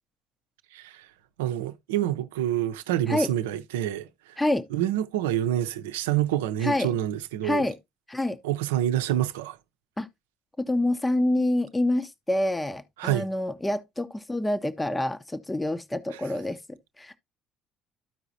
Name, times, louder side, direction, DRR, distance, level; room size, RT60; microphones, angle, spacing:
voice 1, 0.7-1.1 1.4-4.4 4.7-7.7 8.4-9.6 13.0-13.2 16.1-16.2, right 12 dB, 85° right, 0.6 m, -27 dB
voice 2, 4.4-4.7 6.6-6.9 7.4-7.8 8.1-8.4 10.0-10.1 10.6-16.6 17.0-17.2, left 1 dB, 15° left, 0.7 m, -27 dB
13.5 x 4.8 x 2.7 m
hypercardioid pair, 65°, 0 cm